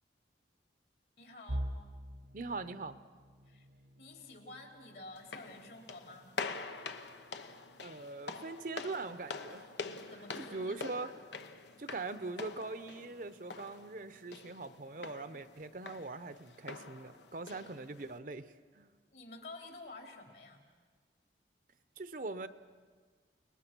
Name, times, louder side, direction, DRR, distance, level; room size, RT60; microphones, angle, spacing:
voice 1, 1.2-1.8 3.5-3.7 4.0-6.3 10.1-11.1 19.1-20.7, left 2 dB, 65° left, 2 dB, 3.6 m, -50 dB
sound 1, 1.5-13.3 13.7-14.0 14.4-14.6 15.4-15.9, equal, 80° right, 1.4 m, -48 dB
voice 2, 2.3-3.0 7.8-10.0 10.5-11.1 11.8-18.9 22.0-22.5, right 3 dB, 50° right, 12 dB, 0.8 m, -42 dB
sound 2, 5.2-18.2, left 4 dB, 90° left, 1.1 m, -46 dB
30.0 x 20.0 x 6.1 m, 1.5 s
head